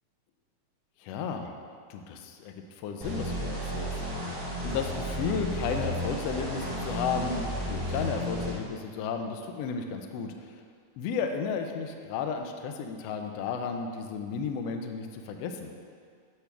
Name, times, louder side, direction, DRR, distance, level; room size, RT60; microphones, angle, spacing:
voice 1, 1.0-1.5 1.9-4.0 4.6-10.6 11.0-15.7, left 5 dB, 85° left, 5 dB, 1.4 m, -33 dB
sound 1, 3.0-8.5, equal, 30° right, 1.9 m, -33 dB
8.4 x 3.4 x 6.0 m, 2.1 s
omnidirectional pair, 3.3 m